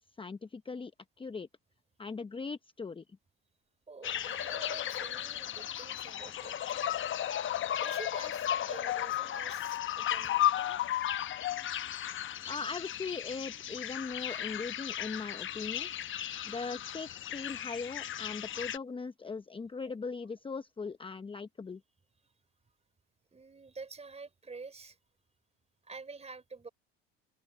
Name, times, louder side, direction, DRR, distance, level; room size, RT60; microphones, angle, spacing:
voice 1, 0.2-0.9 1.2-1.5 2.0-3.0 12.5-15.9 16.5-21.8, left 4 dB, 15° left, 0.9 m, -39 dB
voice 2, 3.9-6.6 7.8-10.9 19.8-19.9 23.3-25.0 25.8-26.7, right 4 dB, 20° right, 4.7 m, -48 dB
sound 1, 4.0-18.8, left 11 dB, 40° left, 0.9 m, -35 dB
open air
supercardioid pair, 85°, 32 cm